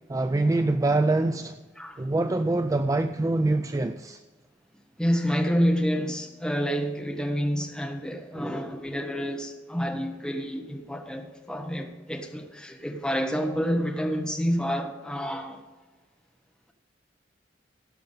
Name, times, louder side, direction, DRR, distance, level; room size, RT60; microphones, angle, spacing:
voice 1, 0.1-1.6 2.0-4.2 8.4-8.5, right 2 dB, 20° right, 0.3 m, -25 dB
voice 2, 5.0-15.6, equal, 5° left, 1.1 m, -28 dB
17.0 x 5.8 x 5.5 m
head